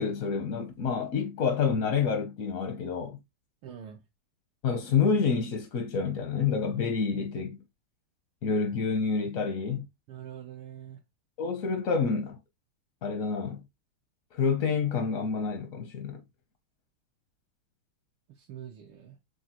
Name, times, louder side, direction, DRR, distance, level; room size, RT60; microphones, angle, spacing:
voice 1, 0.0-3.2 4.6-7.6 8.4-9.9 11.4-12.4 13.0-13.6 14.3-16.2, left 5 dB, 65° left, 0.8 m, -28 dB
voice 2, 3.6-4.0 10.1-11.0 18.3-19.2, right 9 dB, 75° right, 1.6 m, -44 dB
6.5 x 2.3 x 2.9 m
omnidirectional pair, 2.4 m